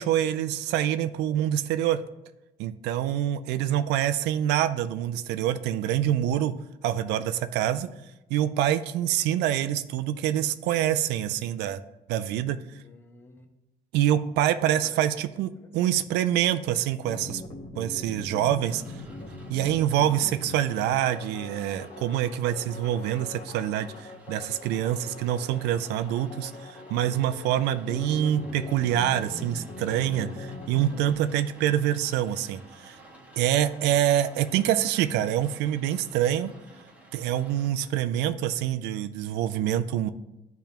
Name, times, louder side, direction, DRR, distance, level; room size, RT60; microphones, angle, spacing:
voice 1, 0.0-2.0 2.6-6.5 6.8-7.9 8.3-11.8 12.1-12.6 13.9-17.4 17.8-18.8 19.5-33.0 33.4-36.5 37.1-40.1, right 11 dB, 85° right, 0.4 m, -26 dB
voice 2, 12.8-13.5 14.8-15.1 15.4-16.0 18.3-19.5 37.1-37.8, left 2 dB, 15° left, 0.9 m, -52 dB
sound 1, 17.0-31.1, left 2 dB, 35° left, 0.9 m, -42 dB
Rain, 18.6-37.7, right 2 dB, 10° right, 1.3 m, -53 dB
10.5 x 3.5 x 2.9 m
cardioid pair, 110°, 17 cm